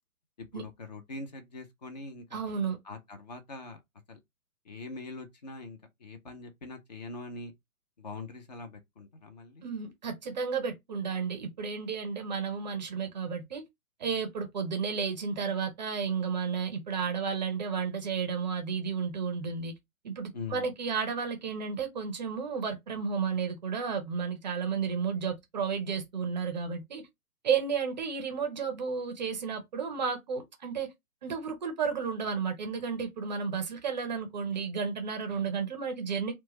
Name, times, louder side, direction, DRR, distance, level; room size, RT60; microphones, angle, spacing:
voice 1, 0.4-2.4 2.8-3.8 4.1-4.2 4.6-7.5 8.0-9.6 20.3-20.7, left 3 dB, 30° left, 0.4 m, -43 dB
voice 2, 2.3-2.8 9.6-13.6 14.0-19.7 20.0-27.0 27.4-30.9 31.2-36.3, right 6 dB, 30° right, 0.5 m, -32 dB
2.9 x 2.1 x 2.9 m
hypercardioid pair, 130°, 44 cm